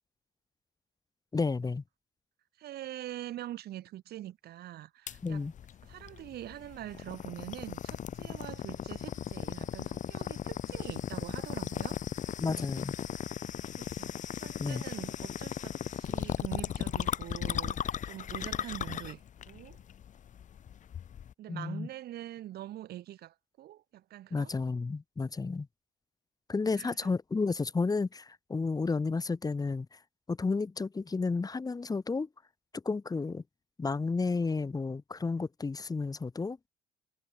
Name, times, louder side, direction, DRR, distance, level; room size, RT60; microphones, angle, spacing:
voice 1, 1.3-1.8 5.2-5.5 12.4-12.9 14.6-14.8 21.5-21.9 24.3-25.7 26.5-30.0 30.3-32.3 32.7-33.4 33.8-36.6, left 4 dB, 20° left, 3.7 m, -32 dB
voice 2, 2.6-5.5 5.9-12.0 13.8-19.8 21.4-24.5 26.7-26.9, right 13 dB, 70° right, 7.1 m, -44 dB
sound 1, 5.1-21.3, left 9 dB, 45° left, 1.6 m, -37 dB
cardioid pair, 110°, 17 cm